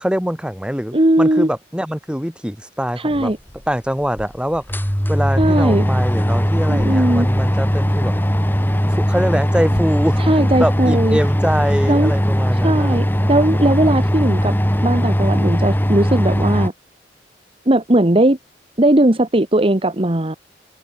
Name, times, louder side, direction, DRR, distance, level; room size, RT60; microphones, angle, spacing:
voice 1, 0.0-3.3 3.7-4.6 5.1-8.1 8.9-13.0, equal, 5° right, 5.2 m, -23 dB
voice 2, 0.9-1.5 3.0-3.4 5.4-5.8 6.7-7.3 10.2-11.2 11.9-12.1 12.6-14.5 14.8-16.7 17.6-18.4 18.8-20.4, right 1 dB, 30° right, 1.5 m, -17 dB
sound 1, 3.5-3.6 4.2-4.3 4.5-16.7, equal, 10° left, 4.7 m, -18 dB
head